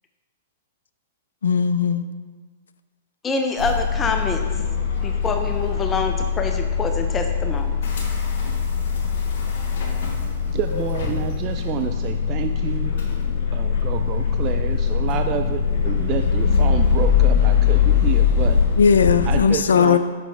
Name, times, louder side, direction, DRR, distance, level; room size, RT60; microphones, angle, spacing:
voice 1, 1.4-2.1 18.8-20.0, left 6 dB, 75° left, 11 dB, 0.3 m, -17 dB
voice 2, 3.2-4.4 5.0-7.8, left 4 dB, 20° left, 5 dB, 0.5 m, -26 dB
sound 1, 3.6-19.4, left 7 dB, 60° left, 1.4 m, -22 dB
voice 3, 10.5-12.9 13.5-18.6 19.3-20.0, right 10 dB, 35° right, 7 dB, 0.3 m, -29 dB
5.9 x 5.9 x 3.4 m, 1.4 s
hypercardioid pair, 110°, 0 cm